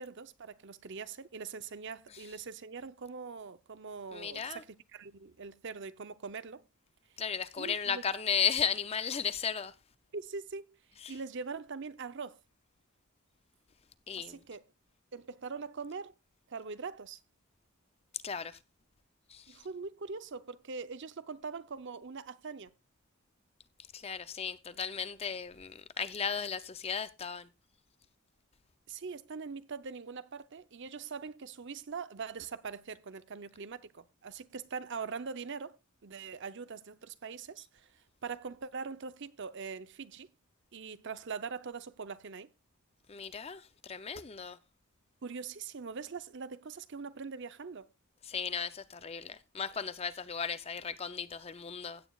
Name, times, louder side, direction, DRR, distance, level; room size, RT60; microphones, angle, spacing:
voice 1, 0.0-6.6 7.6-8.0 10.1-10.8 11.1-12.4 14.2-14.6 15.1-16.1 16.5-17.2 19.5-22.7 28.9-40.3 40.7-42.5 45.2-47.9, right 5 dB, 55° right, 0.6 m, -42 dB
voice 2, 4.1-4.6 7.2-9.7 14.1-14.4 18.2-18.6 19.3-19.4 23.9-27.5 43.1-44.6 48.3-52.0, left 7 dB, 25° left, 0.5 m, -35 dB
16.0 x 9.1 x 2.3 m
head